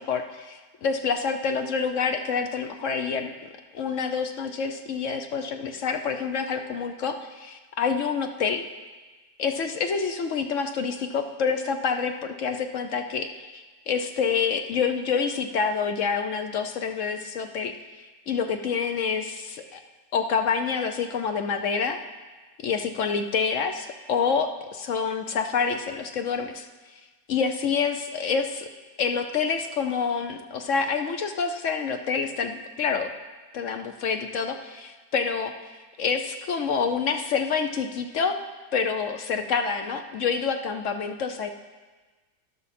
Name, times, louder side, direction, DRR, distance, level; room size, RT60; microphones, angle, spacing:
voice 1, 0.0-3.3 3.7-8.6 9.4-19.8 20.1-22.0 22.6-26.7 27.3-28.4 29.0-33.1 33.5-35.5 36.0-38.4 38.7-41.5, left 5 dB, 60° left, 7 dB, 0.8 m, -27 dB
12.0 x 12.0 x 4.2 m, 1.3 s
omnidirectional pair, 1.8 m